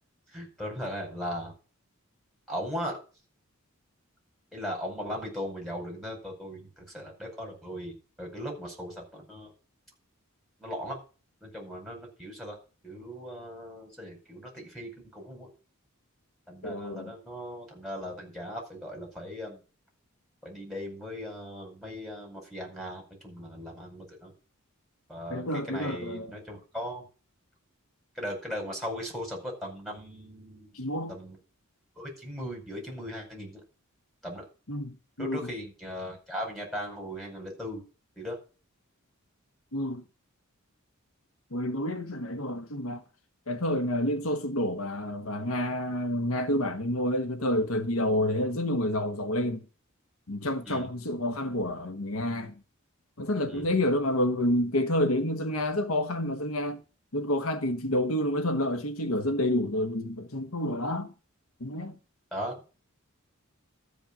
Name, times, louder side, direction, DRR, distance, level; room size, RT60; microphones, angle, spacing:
voice 1, 0.3-1.5 2.5-3.0 4.5-9.5 10.6-11.0 11.4-12.6 12.8-15.5 16.5-19.6 20.4-24.3 25.1-27.1 28.1-30.8 31.1-31.4 31.9-33.6 34.2-34.4 35.2-37.8 38.1-38.4 50.7-50.9 53.5-53.7 62.3-62.6, equal, ahead, 5.2 m, -38 dB
voice 2, 16.6-17.1 25.3-26.3 30.7-31.1 34.7-35.5 39.7-40.0 41.5-43.0 43.5-49.7 50.3-52.6 53.2-56.8 57.1-61.1 61.6-62.0, left 1 dB, 85° left, 1.3 m, -29 dB
13.0 x 5.5 x 8.7 m
head